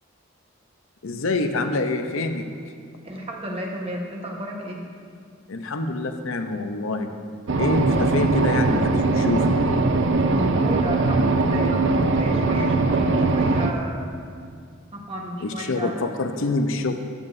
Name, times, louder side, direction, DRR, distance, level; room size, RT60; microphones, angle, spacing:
voice 1, 1.0-2.5 5.5-7.1 7.6-9.6 15.4-16.9, left 2 dB, 65° left, 6 dB, 0.7 m, -26 dB
voice 2, 3.0-4.9 10.2-14.1 14.9-16.0, equal, 25° right, -1 dB, 1.2 m, -32 dB
sound 1, 7.5-13.7, right 3 dB, 55° right, 0.5 m, -21 dB
13.0 x 11.5 x 2.7 m, 2.2 s
head